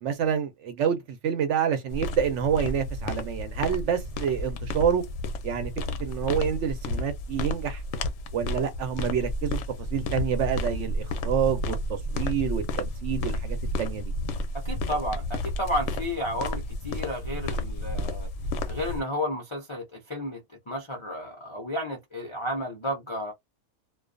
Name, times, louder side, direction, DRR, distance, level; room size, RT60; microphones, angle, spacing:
voice 1, 0.0-5.0 5.4-7.8 8.3-9.6 9.9-14.1, right 8 dB, 65° right, 0.8 m, -28 dB
sound 1, 1.9-19.0, left 1 dB, 65° left, 0.8 m, -32 dB
voice 2, 14.6-18.3 18.7-20.4 20.7-23.3, left 1 dB, 50° left, 0.3 m, -32 dB
2.3 x 2.2 x 2.4 m
omnidirectional pair, 1.5 m